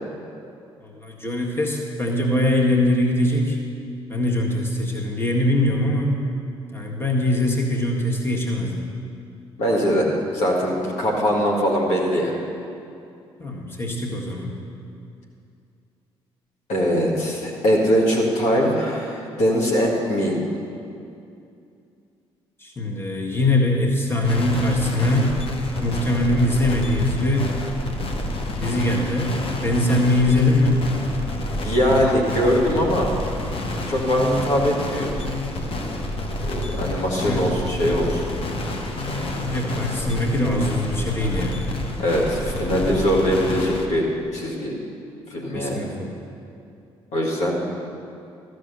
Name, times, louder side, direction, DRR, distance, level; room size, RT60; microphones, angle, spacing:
voice 1, 0.8-3.6 4.1-6.2 6.7-8.8 13.4-14.6 22.6-25.4 25.8-27.6 28.6-30.9 37.2-37.4 39.4-41.6 45.5-46.1, left 1 dB, 15° left, -1 dB, 1.8 m, -22 dB
voice 2, 9.6-12.3 16.7-20.4 31.5-33.1 33.9-35.1 36.5-38.2 42.0-44.1 44.3-44.7 45.3-45.9 47.1-47.6, equal, 60° left, -3 dB, 1.8 m, -21 dB
sound 1, 24.2-43.8, left 1 dB, 45° left, 1.2 m, -29 dB
13.5 x 6.5 x 6.8 m, 2.5 s
figure-of-eight pair, 45°, 13 cm